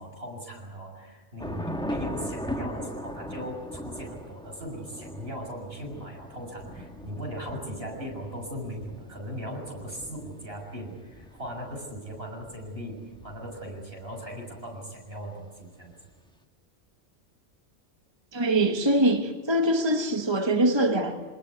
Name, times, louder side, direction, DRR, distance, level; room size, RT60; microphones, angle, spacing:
voice 1, 0.0-15.9, equal, 60° right, 7.1 m, -38 dB
Thunder / Rain, 1.4-13.9, equal, 5° left, 1.1 m, -40 dB
voice 2, 18.3-21.2, right 1 dB, 25° right, 1.3 m, -23 dB
24.0 x 20.5 x 9.6 m
omnidirectional pair, 1.2 m